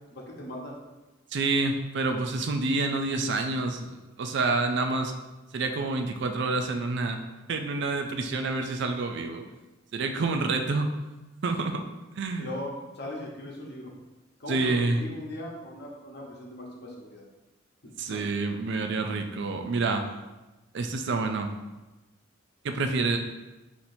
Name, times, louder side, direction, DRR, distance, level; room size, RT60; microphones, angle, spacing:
voice 1, 0.1-0.8 12.4-13.9 14.4-17.2 18.1-18.2, left 1 dB, 55° left, -2 dB, 0.9 m, -39 dB
voice 2, 1.3-5.1 5.5-7.2 7.5-9.4 9.9-10.9 11.4-11.8 12.2-12.5 14.5-15.0 18.0-20.0 20.7-21.5 22.6-23.2, right 3 dB, 60° right, 5 dB, 0.4 m, -28 dB
5.8 x 2.9 x 2.7 m, 1.1 s
head